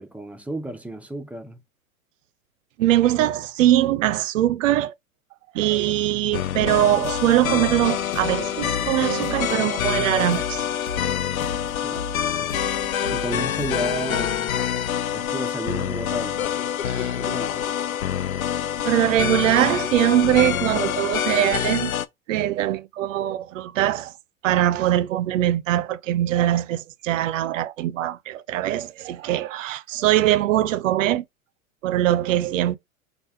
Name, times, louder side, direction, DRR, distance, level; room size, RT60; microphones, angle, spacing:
voice 1, 0.0-1.6 11.8-12.5 13.1-14.7 15.1-16.5 17.1-17.7, right 1 dB, 5° right, 0.5 m, -33 dB
voice 2, 2.8-4.9 5.5-10.7 13.0-13.2 16.8-17.2 18.8-21.9 22.3-24.1 24.4-31.2 31.8-32.8, right 13 dB, 65° right, 0.6 m, -22 dB
sound 1, 6.3-22.1, left 10 dB, 75° left, 0.5 m, -26 dB
sound 2, 6.6-14.4, left 3 dB, 60° left, 1.0 m, -37 dB
3.3 x 2.4 x 4.3 m
figure-of-eight pair, 90°, 42 cm